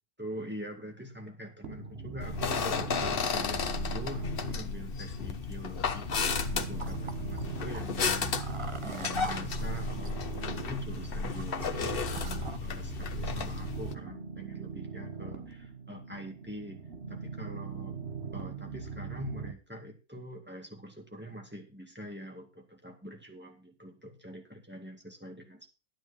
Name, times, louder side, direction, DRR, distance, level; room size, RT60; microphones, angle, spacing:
voice 1, 0.2-8.4 8.8-16.8 17.1-17.9 18.3-25.7, equal, 10° right, 2 dB, 2.1 m, -44 dB
sound 1, 1.6-19.5, right 5 dB, 60° right, 1.7 m, -41 dB
sound 2, 2.2-13.9, left 5 dB, 50° left, 1.1 m, -33 dB
sound 3, 6.1-12.6, right 4 dB, 30° right, 0.8 m, -46 dB
12.0 x 9.9 x 4.3 m, 0.32 s
omnidirectional pair, 1.3 m